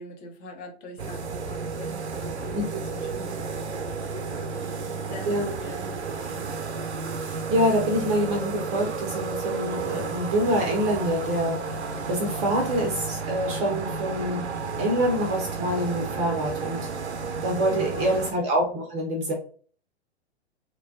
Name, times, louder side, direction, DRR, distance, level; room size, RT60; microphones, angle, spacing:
voice 1, 0.0-3.4 3.8-5.3 5.6-6.0 6.3-6.5 17.7-18.2, left 1 dB, 35° left, 2 dB, 0.8 m, -43 dB
sound 1, 1.0-18.3, right 4 dB, 80° right, 0.6 m, -32 dB
voice 2, 7.2-11.6 12.1-14.4 14.8-16.9 17.4-19.3, equal, 20° right, 1 dB, 0.5 m, -26 dB
3.1 x 2.2 x 2.5 m, 0.43 s
figure-of-eight pair, 110°, 33 cm